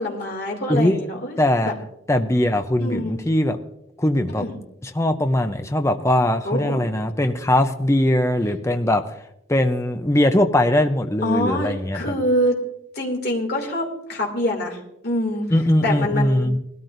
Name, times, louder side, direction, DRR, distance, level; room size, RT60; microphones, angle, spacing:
voice 1, 0.0-1.4 1.6-1.7 2.8-3.2 4.4-4.6 6.4-6.8 11.2-12.6 12.9-14.8 15.0-15.5 15.8-16.5, left 1 dB, 50° left, 1 dB, 2.5 m, -25 dB
voice 2, 1.4-1.7 2.1-3.6 4.0-4.4 4.8-9.1 9.5-12.0 15.5-16.6, left 1 dB, 15° left, 7 dB, 0.6 m, -20 dB
20.0 x 13.0 x 2.6 m, 0.80 s
head